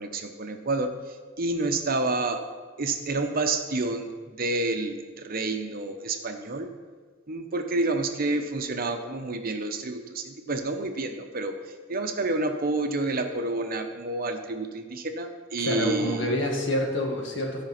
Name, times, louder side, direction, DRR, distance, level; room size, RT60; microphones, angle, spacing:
voice 1, 0.0-2.5 2.8-6.7 7.3-16.3, right 2 dB, 45° right, 6 dB, 0.8 m, -29 dB
voice 2, 15.6-17.6, equal, 65° left, 1 dB, 1.6 m, -27 dB
12.5 x 5.1 x 5.9 m, 1.5 s
head